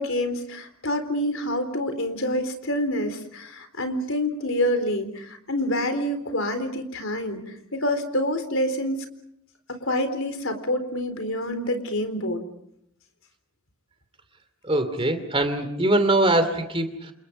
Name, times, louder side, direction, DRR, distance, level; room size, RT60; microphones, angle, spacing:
voice 1, 0.0-9.1 9.7-12.4, left 1 dB, 70° left, 8 dB, 4.1 m, -27 dB
voice 2, 14.6-17.1, right 1 dB, 25° right, 9 dB, 2.6 m, -22 dB
29.5 x 28.0 x 5.3 m, 0.72 s
head